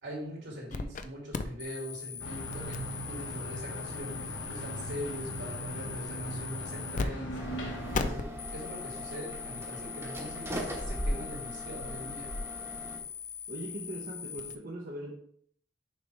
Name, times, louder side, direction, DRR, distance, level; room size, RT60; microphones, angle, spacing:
voice 1, 0.0-12.3, equal, 75° right, -2 dB, 2.8 m, -42 dB
sound 1, 0.7-1.0 1.3-7.1 7.3-7.4 7.9-14.6, left 5 dB, 45° left, 0.5 m, -39 dB
sound 2, 2.2-8.1, right 1 dB, 90° left, 1.4 m, -39 dB
sound 3, 7.4-13.0, equal, 15° right, 1.2 m, -38 dB
voice 2, 13.5-15.1, right 1 dB, 50° right, -3 dB, 0.9 m, -40 dB
6.7 x 5.0 x 3.4 m, 0.62 s
head